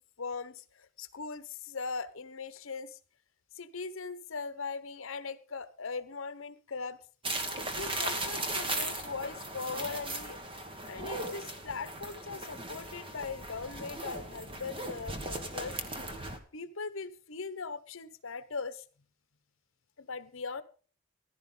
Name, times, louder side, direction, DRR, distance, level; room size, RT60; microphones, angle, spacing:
voice 1, 0.2-3.0 3.5-7.0 7.7-10.4 10.9-15.8 16.5-18.8 20.0-20.6, left 4 dB, 70° left, 14 dB, 1.0 m, -40 dB
sound 1, 7.2-16.4, right 2 dB, 25° right, 1.4 m, -37 dB
15.0 x 12.5 x 3.9 m, 0.39 s
head